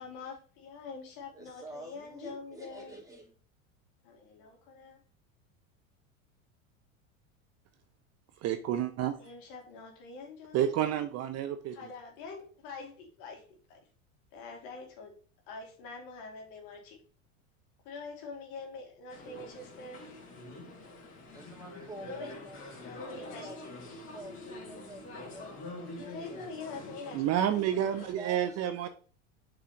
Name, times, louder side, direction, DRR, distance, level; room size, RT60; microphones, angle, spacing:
voice 1, 0.0-3.0 4.0-5.0 9.2-11.0 11.7-13.4 13.7-13.8 14.3-15.1 15.5-17.0 17.8-20.0 22.0-23.8 26.0-28.0, left 4 dB, 60° left, 1 dB, 2.4 m, -45 dB
voice 2, 1.3-3.4 21.3-25.9 26.2-26.8 28.1-28.9, right 1 dB, 10° right, -1 dB, 2.5 m, -48 dB
voice 3, 8.4-9.2 10.5-11.8 27.1-28.9, right 10 dB, 40° right, 9 dB, 0.6 m, -29 dB
sound 1, 19.1-28.1, left 2 dB, 30° left, 2.8 m, -46 dB
6.8 x 5.0 x 3.0 m, 0.40 s
hypercardioid pair, 90°, 40 cm